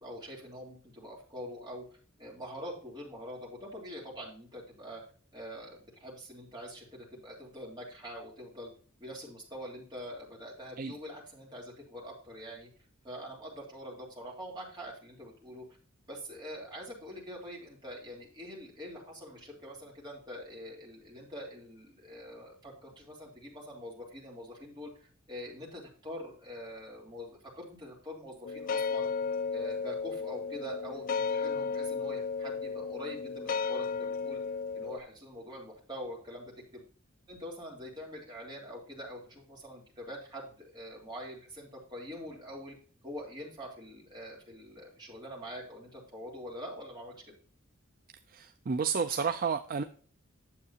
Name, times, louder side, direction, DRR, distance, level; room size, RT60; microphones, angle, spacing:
voice 1, 0.0-1.8 2.2-5.0 5.3-8.7 9.0-12.7 13.0-15.6 16.1-24.9 25.3-29.1 29.5-34.4 34.7-36.8 37.3-42.8 43.0-47.1, equal, 20° right, -3 dB, 3.2 m, -44 dB
sound 1, 28.4-35.0, left 5 dB, 40° left, 0.4 m, -34 dB
voice 2, 48.3-49.8, right 6 dB, 45° right, 9 dB, 0.4 m, -31 dB
9.4 x 7.4 x 2.8 m, 0.43 s
head